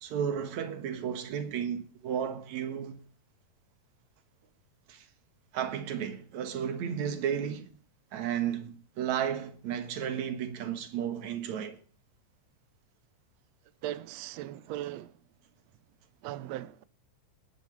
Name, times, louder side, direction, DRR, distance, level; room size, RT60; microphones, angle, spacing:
voice 1, 0.0-3.0 4.9-5.1 5.5-7.7 8.1-11.8, right 8 dB, 60° right, 2.5 m, -33 dB
voice 2, 13.8-15.1 16.2-16.8, right 14 dB, 85° right, 1.5 m, -38 dB
20.0 x 11.0 x 3.2 m
omnidirectional pair, 4.0 m